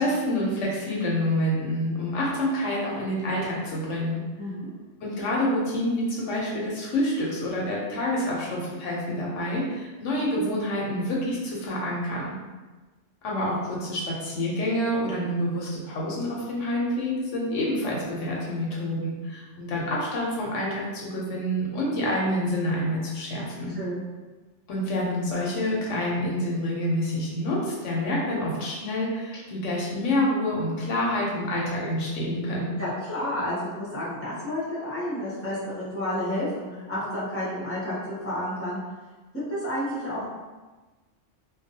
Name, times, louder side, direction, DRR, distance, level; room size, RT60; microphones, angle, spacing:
voice 1, 0.0-4.2 5.0-12.4 13.2-23.8 24.7-32.7, left 1 dB, 85° left, -4 dB, 1.0 m, -27 dB
voice 2, 4.4-4.7 23.7-24.0 32.8-38.8 39.5-40.4, left 1 dB, 15° left, -10 dB, 0.7 m, -30 dB
2.3 x 2.3 x 2.7 m, 1.3 s
omnidirectional pair, 1.2 m